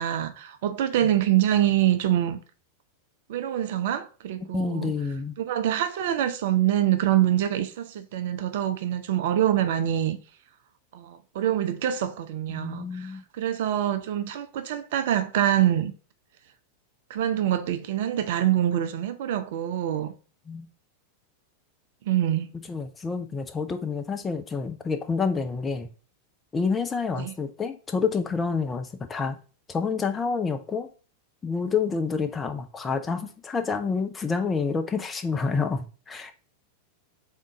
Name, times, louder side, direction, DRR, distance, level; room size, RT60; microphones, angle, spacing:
voice 1, 0.0-2.4 3.3-4.9 5.4-10.2 10.9-15.9 17.1-20.1 22.1-22.5 27.2-27.3, right 11 dB, 55° right, 0.5 m, -25 dB
voice 2, 4.5-5.4 12.5-13.2 20.5-20.7 22.7-25.9 26.5-29.4 29.7-30.9 31.4-36.3, left 5 dB, 15° left, 0.6 m, -28 dB
3.7 x 3.7 x 4.0 m
figure-of-eight pair, 90°, 0 cm